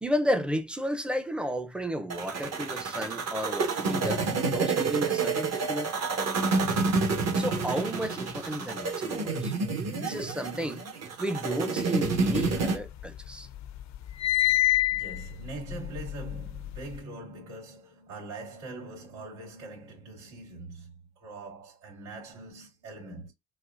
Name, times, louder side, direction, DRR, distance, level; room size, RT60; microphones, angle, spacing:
voice 1, 0.0-4.2 4.5-5.9 7.3-9.5 9.9-10.8 11.2-13.5, equal, 5° right, 0.5 m, -32 dB
sound 1, 2.1-12.8, right 4 dB, 55° right, 1.3 m, -29 dB
sound 2, 12.2-13.2 13.6-17.0, left 15 dB, 65° left, 0.5 m, -28 dB
voice 2, 14.9-23.3, right 2 dB, 85° right, 2.5 m, -42 dB
4.0 x 2.4 x 2.5 m
cardioid pair, 90°, 30 cm